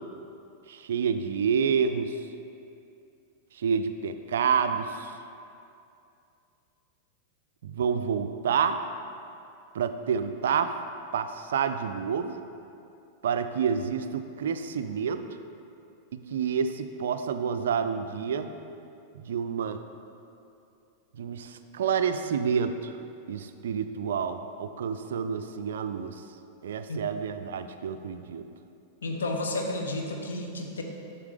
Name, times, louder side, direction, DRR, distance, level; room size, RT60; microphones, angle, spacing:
voice 1, 0.7-2.2 3.5-5.2 7.6-8.8 9.7-10.8 11.1-12.4 13.2-15.2 16.1-18.6 19.1-19.8 21.2-23.0 23.3-26.2 26.6-28.5, right 7 dB, 60° right, 9 dB, 0.3 m, -28 dB
voice 2, 29.0-30.8, left 2 dB, 70° left, 2 dB, 0.8 m, -31 dB
8.0 x 5.7 x 3.5 m, 2.6 s
figure-of-eight pair, 90°, 0 cm